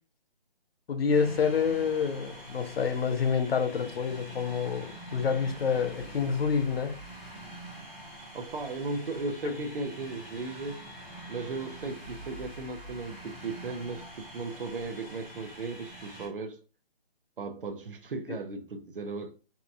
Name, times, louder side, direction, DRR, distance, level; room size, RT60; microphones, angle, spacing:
voice 1, 0.9-7.0 18.3-18.4, left 6 dB, 75° left, 0.5 m, -28 dB
sound 1, 1.1-16.3, right 1 dB, 10° left, 0.9 m, -45 dB
voice 2, 8.3-10.9 11.3-16.6 17.4-19.3, right 3 dB, 60° right, 0.5 m, -36 dB
2.8 x 2.2 x 2.4 m
hypercardioid pair, 180°, 30 cm